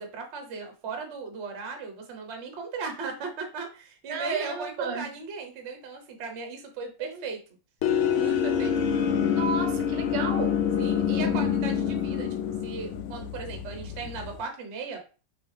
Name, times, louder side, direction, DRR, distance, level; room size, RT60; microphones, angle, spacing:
voice 1, 0.0-7.4 8.2-8.7 10.8-12.4 12.6-15.0, right 5 dB, 45° right, 0.9 m, -37 dB
voice 2, 4.1-5.1 7.0-7.2 9.3-10.6 11.1-11.6, right 5 dB, 90° right, 1.8 m, -33 dB
sound 1, 7.8-14.4, left 8 dB, 80° left, 1.5 m, -26 dB
5.3 x 2.9 x 3.4 m
omnidirectional pair, 2.4 m